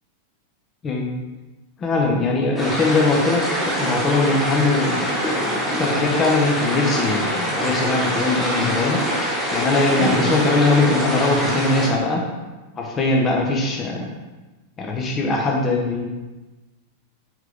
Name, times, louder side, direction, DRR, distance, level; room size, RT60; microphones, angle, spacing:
voice 1, 1.8-3.4 3.8-9.0 9.5-12.2 12.8-14.1 14.8-16.1, left 3 dB, 25° left, -1 dB, 1.1 m, -21 dB
sound 1, 2.6-11.9, equal, 10° left, 2.3 m, -24 dB
6.3 x 5.2 x 3.5 m, 1.2 s
figure-of-eight pair, 90°, 0 cm